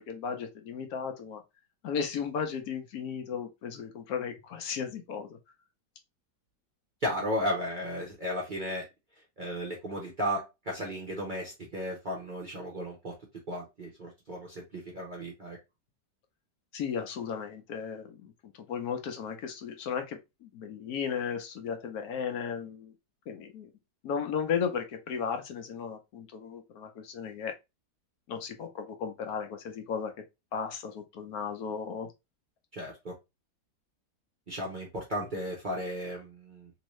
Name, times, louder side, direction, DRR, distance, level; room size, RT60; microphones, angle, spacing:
voice 1, 0.0-1.4 1.8-5.4 16.7-22.9 23.3-23.7 24.0-27.5 28.3-30.1 30.5-32.1, left 6 dB, 70° left, 1.0 m, -35 dB
voice 2, 7.0-8.9 9.4-13.2 13.5-15.6 32.7-33.1 34.5-36.7, equal, 45° right, 0.6 m, -34 dB
3.0 x 2.7 x 3.0 m
omnidirectional pair, 1.8 m